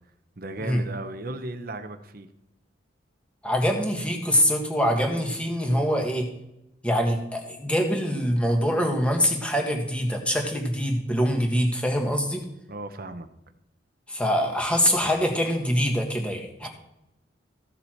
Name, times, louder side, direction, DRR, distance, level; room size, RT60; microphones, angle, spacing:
voice 1, 0.4-2.3 12.7-13.3 16.6-16.7, right 2 dB, 50° right, 9 dB, 0.9 m, -35 dB
voice 2, 3.4-6.3 6.8-12.4 14.1-16.7, equal, 5° left, 2 dB, 1.6 m, -24 dB
15.0 x 7.0 x 4.5 m, 0.87 s
head